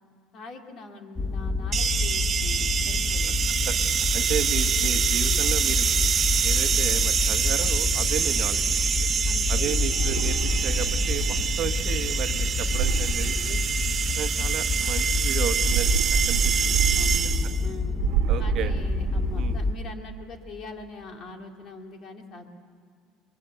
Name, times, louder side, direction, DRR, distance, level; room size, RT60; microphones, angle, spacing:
voice 1, 0.3-3.4 9.2-10.0 16.9-18.0 18.4-22.5, left 3 dB, 45° left, 4 dB, 2.3 m, -42 dB
sound 1, 1.2-19.7, left 3 dB, 5° left, 1.0 m, -28 dB
sound 2, 1.7-17.7, right 7 dB, 35° right, 0.5 m, -26 dB
voice 2, 4.1-6.0 6.4-8.8 9.5-10.4 10.6-13.6 14.1-16.8 18.3-18.7 19.3-19.6, right 10 dB, 50° right, 8 dB, 1.1 m, -34 dB
sound 3, 9.9-11.7 12.6-14.1 15.5-17.6 17.9-19.7, right 10 dB, 70° right, 1.4 m, -29 dB
23.5 x 22.0 x 8.1 m, 2.1 s
cardioid pair, 125°, 0 cm